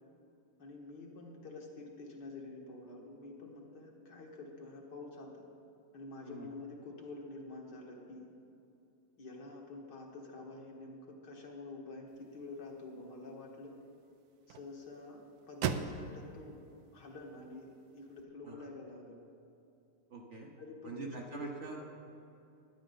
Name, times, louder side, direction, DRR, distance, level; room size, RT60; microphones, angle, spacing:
voice 1, 0.6-5.4 5.9-8.3 9.2-13.7 14.5-16.6 16.9-19.2 20.4-21.5 21.8-21.9, left 2 dB, 60° left, 0 dB, 2.0 m, -48 dB
sound 1, 12.1-18.2, right 7 dB, 70° right, 0.9 m, -43 dB
voice 2, 20.1-20.5 20.8-21.8, right 3 dB, 50° right, 1 dB, 1.0 m, -44 dB
14.0 x 10.5 x 3.9 m, 2.6 s
omnidirectional pair, 2.1 m